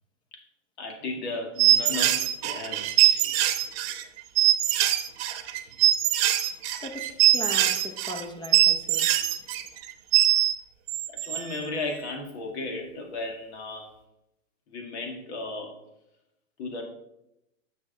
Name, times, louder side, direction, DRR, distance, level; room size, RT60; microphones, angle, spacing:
voice 1, 0.8-3.3 11.1-13.9 14.7-15.7 16.6-16.8, left 2 dB, 55° left, 2.4 m, -35 dB
sound 1, 1.6-10.5 10.9-11.7, right 13 dB, 50° right, 1.0 m, -22 dB
voice 2, 6.8-9.1, left 1 dB, 10° left, 0.9 m, -38 dB
9.5 x 6.5 x 3.9 m
hypercardioid pair, 125°, 39 cm